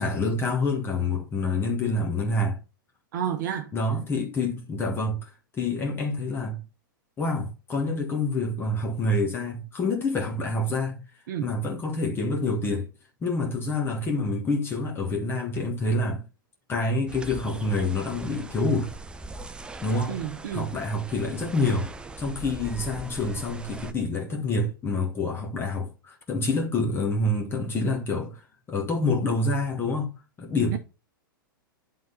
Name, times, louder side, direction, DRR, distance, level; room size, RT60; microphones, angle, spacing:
voice 1, 0.0-2.6 3.7-6.6 7.2-11.0 11.4-12.9 13.2-16.2 16.7-18.9 19.8-20.2 20.5-21.9 22.2-28.4 28.7-30.1 30.4-30.8, left 2 dB, 20° left, 1.6 m, -27 dB
voice 2, 3.1-3.7 11.3-11.5 20.1-20.7 30.7-30.8, right 9 dB, 55° right, 0.8 m, -30 dB
sound 1, 17.1-23.9, right 3 dB, 10° right, 0.5 m, -41 dB
9.4 x 3.9 x 4.2 m
hypercardioid pair, 105°, 12 cm